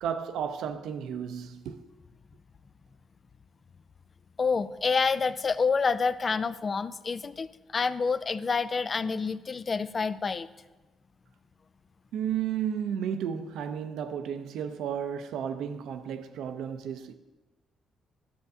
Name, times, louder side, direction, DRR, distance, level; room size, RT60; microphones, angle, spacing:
voice 1, 0.0-1.9 12.1-17.1, right 8 dB, 80° right, 0.5 m, -33 dB
voice 2, 4.4-10.5, left 5 dB, 35° left, 0.3 m, -28 dB
11.5 x 6.6 x 2.6 m
cardioid pair, 90°, 0 cm